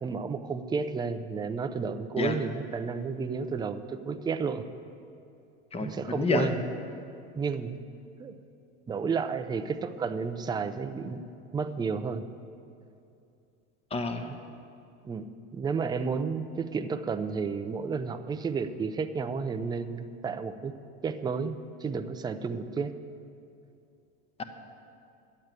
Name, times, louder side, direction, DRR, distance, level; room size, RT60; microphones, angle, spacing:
voice 1, 0.0-4.7 5.8-6.6 7.3-7.8 8.2-8.3 8.9-11.3 11.5-12.2 15.0-15.3 15.5-20.7 21.0-22.9, right 5 dB, 15° right, 9 dB, 0.5 m, -32 dB
voice 2, 5.7-6.5 13.9-14.3, left 3 dB, 20° left, 7 dB, 1.1 m, -28 dB
10.5 x 8.0 x 8.9 m, 2.5 s
supercardioid pair, 125°, 30 cm